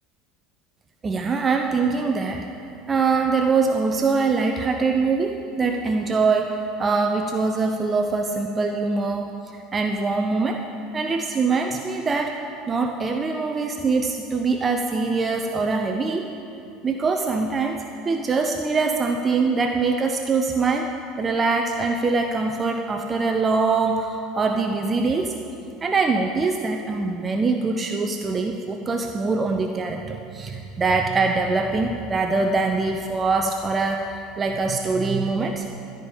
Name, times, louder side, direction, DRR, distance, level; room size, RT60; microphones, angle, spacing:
voice 1, 1.0-2.5 2.9-10.7 10.9-12.4 12.7-16.3 16.8-20.9 21.2-25.3 25.8-35.7, right 4 dB, 25° right, 4 dB, 0.7 m, -23 dB
14.5 x 5.2 x 8.4 m, 2.6 s
figure-of-eight pair, 70°, 0 cm